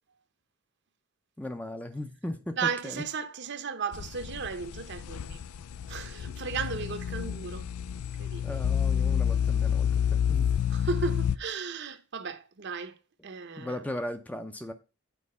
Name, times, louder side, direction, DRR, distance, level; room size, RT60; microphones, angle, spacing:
voice 1, 1.4-3.0 8.4-10.0 10.3-10.5 13.6-14.7, left 1 dB, 5° left, 0.5 m, -37 dB
voice 2, 2.6-5.4 5.9-7.6 8.2-8.6 10.7-12.9 13.2-13.8, right 5 dB, 50° right, 0.8 m, -35 dB
sound 1, 3.9-11.4, left 8 dB, 85° left, 0.4 m, -29 dB
8.5 x 4.6 x 5.4 m
head